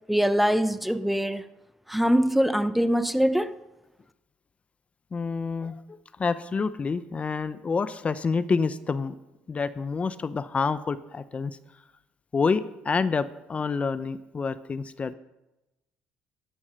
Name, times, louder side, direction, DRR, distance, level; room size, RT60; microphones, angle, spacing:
voice 1, 0.1-1.4 1.9-3.6, equal, 5° right, 0.8 m, -23 dB
voice 2, 5.1-5.8 6.2-9.2 9.5-11.6 12.3-15.1, left 5 dB, 35° left, 0.7 m, -28 dB
12.0 x 11.5 x 6.4 m
supercardioid pair, 70°, 4 cm